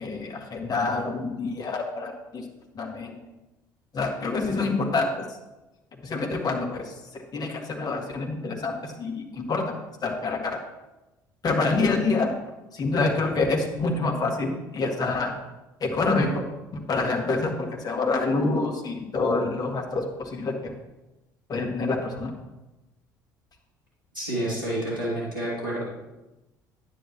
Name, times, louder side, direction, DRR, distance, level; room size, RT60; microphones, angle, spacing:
voice 1, 0.0-2.5 2.7-3.2 3.9-5.4 6.0-9.8 10.0-10.6 11.4-12.3 12.7-15.3 15.8-16.4 16.7-20.7 21.5-22.3, left 3 dB, 40° left, 2 dB, 1.9 m, -27 dB
voice 2, 24.1-25.8, right 1 dB, 90° right, -7 dB, 2.4 m, -29 dB
9.9 x 9.1 x 3.0 m, 1.0 s
figure-of-eight pair, 55°, 10 cm